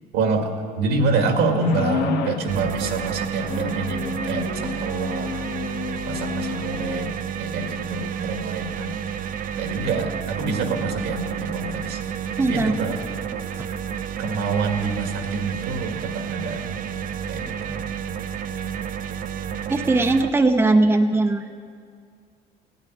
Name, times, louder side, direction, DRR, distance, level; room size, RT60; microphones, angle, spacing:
voice 1, 0.1-0.4 0.8-5.4 6.1-7.1 7.4-8.9 9.5-12.0 12.5-13.0 14.2-16.7 17.3-17.8, right 3 dB, 80° right, 4 dB, 2.1 m, -26 dB
sound 1, 1.6-2.5 3.4-7.1, left 7 dB, 85° left, 1.1 m, -31 dB
sound 2, 2.5-20.3, right 8 dB, 55° right, 0.7 m, -31 dB
voice 2, 12.4-12.7 13.6-13.7 19.7-21.4, right 2 dB, 15° right, 6 dB, 0.8 m, -19 dB
17.0 x 9.2 x 9.3 m, 2.2 s
cardioid pair, 110°, 17 cm